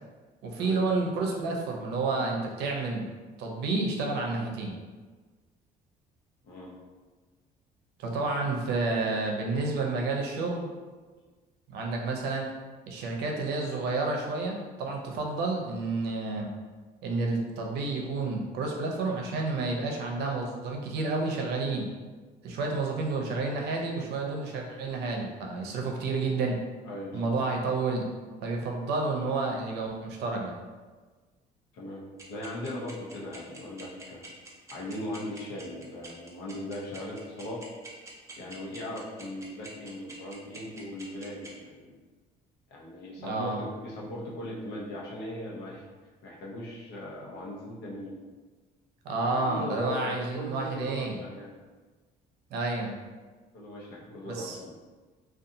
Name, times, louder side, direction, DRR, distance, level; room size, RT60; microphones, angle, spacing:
voice 1, 0.4-3.1 3.4-4.8 8.0-10.7 11.7-12.5 12.9-16.5 17.0-21.9 22.4-26.6 27.1-28.1 28.4-30.6 43.2-43.6 49.0-51.2 52.5-53.0 54.3-54.6, right 3 dB, 75° right, 0 dB, 0.6 m, -30 dB
voice 2, 26.8-27.2 31.7-32.0 32.3-34.2 34.7-37.7 38.4-41.9 42.7-45.9 46.2-48.1 49.1-51.5 53.5-54.7, left 1 dB, 80° left, -3 dB, 0.7 m, -39 dB
sound 1, 32.2-41.5, right 3 dB, 15° right, 0.6 m, -46 dB
2.6 x 2.3 x 2.6 m, 1.4 s
cardioid pair, 110°, 17 cm